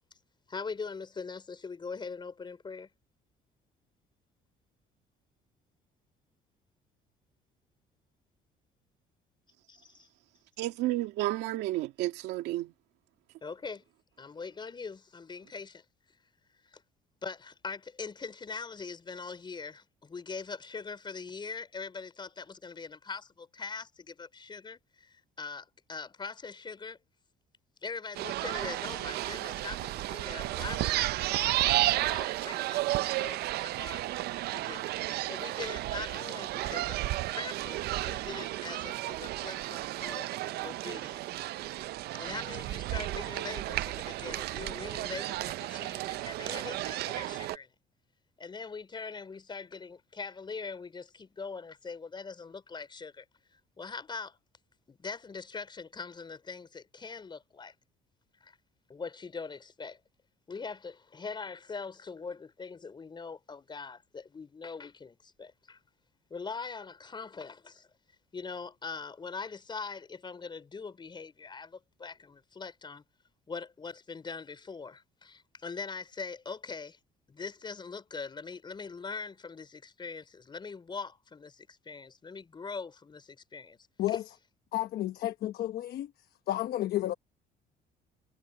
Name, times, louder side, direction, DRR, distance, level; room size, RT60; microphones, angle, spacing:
voice 1, 0.5-2.9 9.7-10.1 13.4-13.8 14.2-15.8 16.7-16.8 17.2-27.0 27.8-34.0 34.5-34.9 35.3-37.0 37.3-40.4 40.6-41.8 42.1-47.7 48.4-53.2 53.5-54.4 54.9-57.7 58.4-58.6 58.9-60.0 60.5-65.8 66.3-67.9 68.3-73.0 73.5-77.0 77.3-83.8 84.1-84.2, left 4 dB, 25° left, 4.4 m, -42 dB
voice 2, 10.6-12.7, right 16 dB, 90° right, 2.3 m, -31 dB
sound 1, 28.1-47.6, right 16 dB, 70° right, 0.5 m, -33 dB
voice 3, 84.7-86.1 86.5-87.1, left 14 dB, 70° left, 1.1 m, -31 dB
cardioid pair, 110°, 17 cm